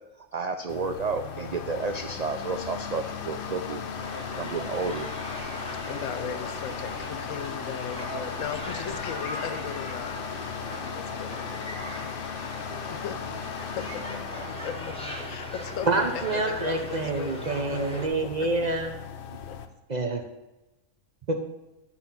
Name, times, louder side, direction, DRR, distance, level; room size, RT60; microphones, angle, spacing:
voice 1, 0.3-3.8 4.3-5.1, right 4 dB, 75° right, 6 dB, 0.3 m, -31 dB
sound 1, 0.7-19.7, left 7 dB, 55° left, 0.7 m, -37 dB
sound 2, 4.0-18.1, equal, 5° left, 1.3 m, -39 dB
voice 2, 5.8-11.5 12.9-13.2 13.7-14.3 14.6-18.5 19.5-19.6, left 7 dB, 80° left, 11 dB, 1.0 m, -38 dB
voice 3, 15.9-18.9 19.9-20.2 21.3-21.4, right 2 dB, 40° right, 4 dB, 0.7 m, -27 dB
9.6 x 4.2 x 5.8 m, 1.0 s
omnidirectional pair, 1.3 m